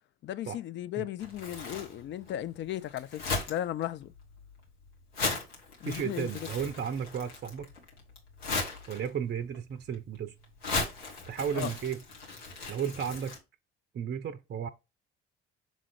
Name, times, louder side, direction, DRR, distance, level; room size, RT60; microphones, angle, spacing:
voice 1, 0.2-3.2 3.5-4.1 5.8-6.5 11.5-11.7, left 12 dB, 35° left, 0.4 m, -35 dB
Crumpling crinkling, 1.2-13.4, left 3 dB, 70° left, 1.9 m, -38 dB
voice 2, 5.8-7.7 8.9-10.3 11.3-12.0 12.7-13.4 13.9-14.7, right 8 dB, 30° right, 0.6 m, -34 dB
6.3 x 3.7 x 4.8 m
figure-of-eight pair, 50°, 33 cm